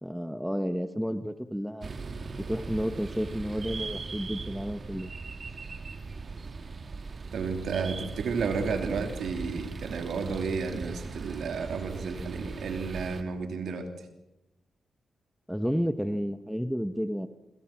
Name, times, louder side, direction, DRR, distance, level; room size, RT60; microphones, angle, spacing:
voice 1, 0.0-1.9 2.4-5.1 15.5-17.3, equal, ahead, 10 dB, 1.3 m, -31 dB
sound 1, 1.8-13.2, right 4 dB, 50° right, 2.1 m, -39 dB
voice 2, 7.3-13.9, right 5 dB, 80° right, 6 dB, 3.1 m, -32 dB
27.0 x 26.0 x 6.1 m, 0.93 s
cardioid pair, 65°, 0 cm